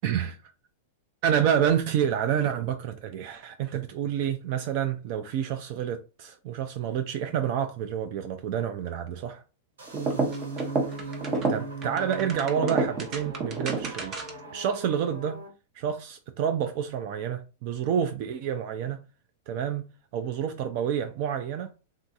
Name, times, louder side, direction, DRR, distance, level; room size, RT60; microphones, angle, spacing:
voice 1, 0.0-0.5 1.2-9.4 11.0-11.2 11.5-14.2 14.5-15.4 15.7-19.0 19.5-19.9 20.1-21.7, right 8 dB, 50° right, 0.4 m, -28 dB
sound 1, 9.8-15.5, right 1 dB, 80° right, 1.0 m, -45 dB
sound 2, 9.9-14.5, right 3 dB, 35° right, 0.8 m, -30 dB
3.6 x 2.6 x 2.3 m
hypercardioid pair, 105°, 0 cm